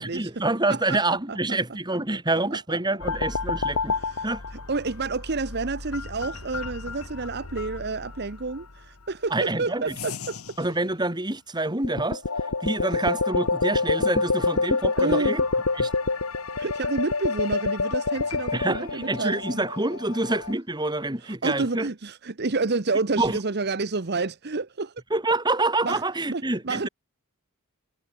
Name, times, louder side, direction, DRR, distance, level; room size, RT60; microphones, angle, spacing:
voice 1, 0.0-3.9 4.2-4.4 9.3-9.9 10.6-12.2 12.6-15.4 15.8-15.9 18.5-21.9 23.2-23.4 25.1-26.9, right 2 dB, 20° right, 3.0 m, -27 dB
voice 2, 0.7-1.0 1.3-1.6 2.7-2.8 4.0-4.3 4.5-10.4 15.0-15.4 16.6-19.6 21.2-24.9 25.8-26.0 26.3-26.9, right 3 dB, 50° right, 1.0 m, -29 dB
sound 1, 3.0-8.6 9.9-10.6 11.8-20.5, left 3 dB, 75° left, 1.9 m, -28 dB
head